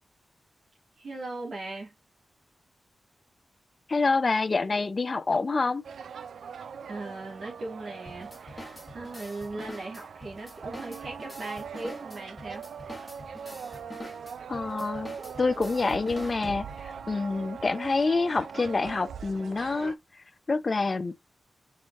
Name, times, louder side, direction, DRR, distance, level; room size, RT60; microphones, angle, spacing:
voice 1, 1.0-1.9 6.9-12.6, right 2 dB, 70° right, 2.3 m, -39 dB
voice 2, 3.9-5.8 14.5-20.0 20.5-21.1, left 3 dB, 40° left, 0.5 m, -27 dB
sound 1, 5.8-19.9, right 6 dB, 85° right, 0.3 m, -41 dB
sound 2, 8.1-17.0, left 1 dB, 15° left, 1.4 m, -46 dB
4.9 x 4.0 x 2.5 m
cardioid pair, 80°, 0 cm